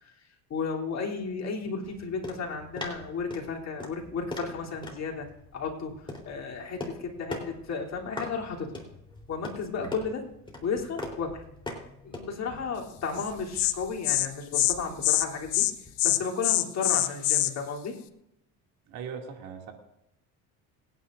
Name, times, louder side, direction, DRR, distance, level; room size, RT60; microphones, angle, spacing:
voice 1, 0.5-5.3 5.5-8.8 9.3-10.2 10.6-11.4 12.0-15.7 16.0-18.0, left 5 dB, 45° left, -1 dB, 3.4 m, -33 dB
sound 1, 1.8-16.0, left 1 dB, 15° left, 3.8 m, -43 dB
Insect, 13.2-13.3 13.6-13.7 14.0-14.3 14.5-14.7 15.0-15.3 15.5-15.7 16.0-17.5, left 16 dB, 90° left, 1.0 m, -24 dB
voice 2, 18.9-19.7, right 6 dB, 80° right, 2 dB, 2.7 m, -40 dB
27.0 x 9.8 x 2.6 m, 0.84 s
supercardioid pair, 100°, 36 cm